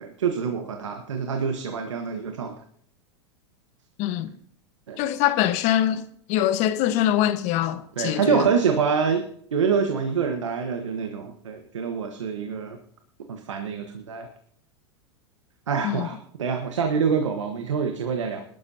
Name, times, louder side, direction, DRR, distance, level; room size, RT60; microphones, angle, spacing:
voice 1, 0.0-2.5 4.9-5.0 8.0-9.2 9.5-12.8 13.3-14.3 15.7-18.4, right 6 dB, 90° right, 1.4 m, -26 dB
voice 2, 4.0-4.4 5.0-8.5 15.8-16.1, left 12 dB, 50° left, 1.3 m, -24 dB
19.5 x 12.5 x 2.9 m
hypercardioid pair, 110°, 15 cm